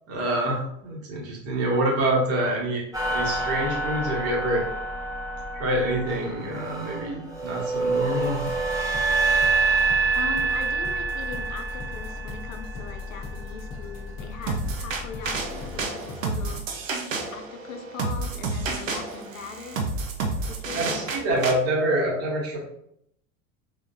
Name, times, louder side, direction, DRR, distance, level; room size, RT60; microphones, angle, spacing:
voice 1, 0.1-2.8 3.1-4.6 5.5-8.4 20.7-22.6, right 1 dB, 35° right, -2 dB, 1.4 m, -26 dB
sound 1, 2.9-15.8, right 3 dB, 10° right, 0.9 m, -27 dB
sound 2, 8.2-16.6, left 4 dB, 40° left, 0.8 m, -43 dB
voice 2, 10.1-16.6 17.3-19.8 20.5-21.3, left 5 dB, 75° left, 6 dB, 0.7 m, -40 dB
sound 3, 14.5-21.5, right 3 dB, 70° right, 0.8 m, -30 dB
3.5 x 3.4 x 2.8 m, 0.73 s
figure-of-eight pair, 75°, 40 cm